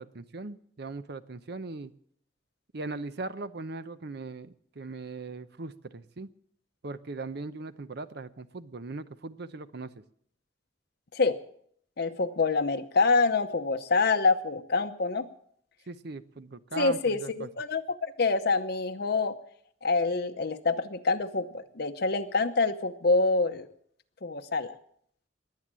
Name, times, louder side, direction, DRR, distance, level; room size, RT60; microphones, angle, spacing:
voice 1, 0.0-1.9 2.7-6.3 6.8-9.9 15.9-17.5, right 3 dB, 60° right, 13 dB, 0.7 m, -39 dB
voice 2, 12.0-15.3 16.8-19.4 19.8-23.7 24.2-24.7, left 3 dB, 60° left, 7 dB, 0.8 m, -26 dB
21.0 x 8.4 x 7.5 m, 0.66 s
head